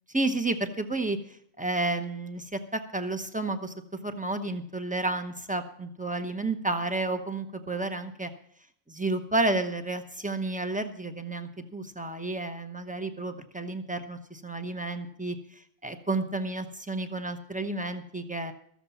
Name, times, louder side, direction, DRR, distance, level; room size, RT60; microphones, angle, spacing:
voice 1, 0.1-1.2 1.6-3.7 4.0-8.3 8.9-15.4 15.8-18.5, right 2 dB, 10° right, 7 dB, 0.5 m, -31 dB
14.0 x 7.4 x 7.0 m, 0.66 s
omnidirectional pair, 1.6 m